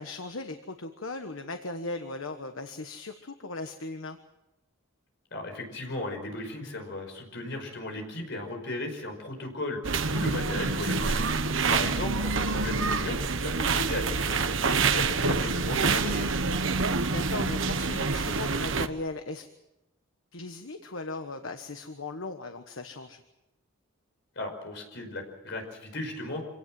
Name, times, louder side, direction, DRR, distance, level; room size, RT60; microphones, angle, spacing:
voice 1, 0.0-4.2 11.8-12.0 17.1-19.5 20.3-23.2, left 2 dB, 75° left, 7 dB, 1.3 m, -37 dB
voice 2, 5.3-9.8 10.1-11.2 11.7-16.3 24.4-26.4, left 2 dB, 60° left, 3 dB, 5.4 m, -35 dB
sound 1, 9.8-18.9, right 4 dB, 65° right, 1.1 m, -27 dB
26.5 x 17.5 x 7.7 m, 0.95 s
head